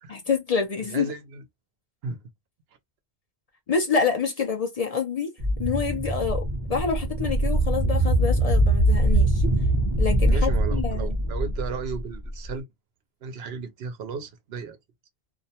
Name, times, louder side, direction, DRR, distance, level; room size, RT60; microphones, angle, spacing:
voice 1, 0.3-1.1 3.7-5.3 5.6-9.4 10.0-11.2, left 5 dB, 45° left, 0.5 m, -27 dB
voice 2, 0.9-1.4 2.0-2.2 10.3-12.7 13.2-14.8, right 5 dB, 75° right, 0.9 m, -34 dB
sound 1, 5.4-12.5, right 1 dB, 25° right, 0.6 m, -23 dB
2.5 x 2.1 x 2.7 m
omnidirectional pair, 1.0 m